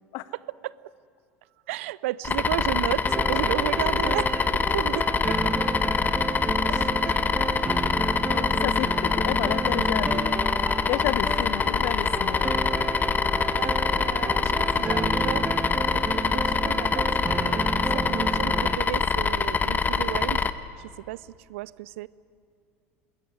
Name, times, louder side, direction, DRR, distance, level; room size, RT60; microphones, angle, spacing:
voice 1, 1.7-5.5 6.7-7.2 7.8-7.9 8.4-8.6 13.5-15.5 15.9-17.1 17.4-20.5 20.8-22.1, right 17 dB, 65° right, 22 dB, 0.6 m, -34 dB
sound 1, 2.2-20.5, left 5 dB, 25° left, 1.2 m, -25 dB
sound 2, 3.1-18.8, right 4 dB, 15° right, 0.6 m, -32 dB
voice 2, 8.3-10.5 10.9-12.6, left 14 dB, 55° left, 16 dB, 1.0 m, -31 dB
27.0 x 21.0 x 9.5 m, 2.4 s
figure-of-eight pair, 70°, 8 cm